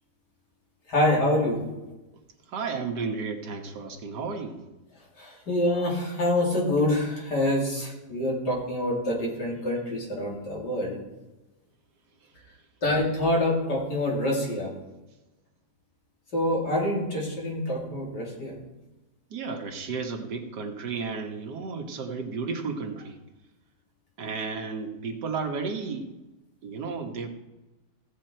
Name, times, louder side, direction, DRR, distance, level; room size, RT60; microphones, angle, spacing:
voice 1, 0.9-1.6 5.2-11.0 12.8-14.7 16.3-18.5, left 1 dB, 80° left, -3 dB, 3.4 m, -26 dB
voice 2, 2.5-4.6 19.3-23.2 24.2-26.1 26.6-27.3, right 4 dB, 80° right, 3 dB, 1.9 m, -33 dB
16.5 x 7.6 x 4.5 m, 1.0 s
omnidirectional pair, 1.8 m